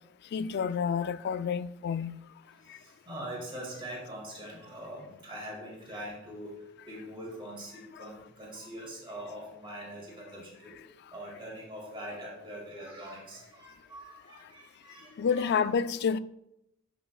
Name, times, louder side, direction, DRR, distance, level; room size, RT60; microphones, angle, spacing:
voice 1, 0.3-2.2 2.7-2.8 8.0-8.1 15.2-16.2, left 6 dB, 55° left, 0.3 m, -29 dB
voice 2, 2.5-6.6 6.9-10.8 11.1-15.7, right 1 dB, 25° right, 2.1 m, -43 dB
9.9 x 6.1 x 2.3 m
head